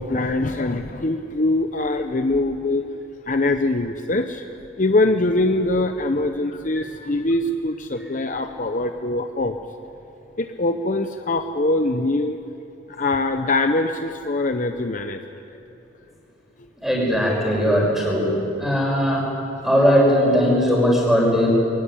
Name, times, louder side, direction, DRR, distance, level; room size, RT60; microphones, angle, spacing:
voice 1, 0.0-2.9 3.3-4.4 4.8-9.6 10.4-12.4 12.9-15.4, left 2 dB, 40° left, 7 dB, 0.7 m, -23 dB
voice 2, 16.8-18.3 18.6-19.3 19.6-21.5, equal, ahead, -2 dB, 5.4 m, -19 dB
22.5 x 17.0 x 9.9 m, 2.9 s
head